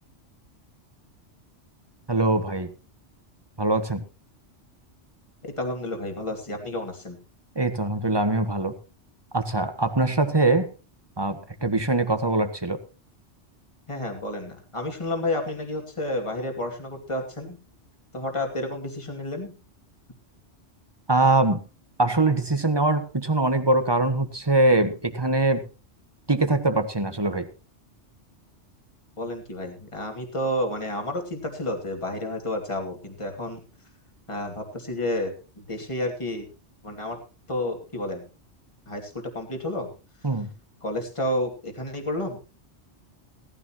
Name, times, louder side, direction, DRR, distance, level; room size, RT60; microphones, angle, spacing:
voice 1, 2.1-2.7 3.6-4.0 7.5-8.7 9.3-10.7 11.2-12.8 21.1-21.6 22.0-25.6 26.3-27.5 40.2-40.5, right 2 dB, 20° right, 9 dB, 1.4 m, -22 dB
voice 2, 5.4-7.2 13.9-17.6 18.1-19.5 29.2-33.6 34.3-36.5 36.8-37.2 37.5-38.2 38.9-39.9 40.8-42.4, left 1 dB, 25° left, 2 dB, 2.7 m, -30 dB
18.0 x 14.0 x 3.0 m, 0.31 s
omnidirectional pair, 1.2 m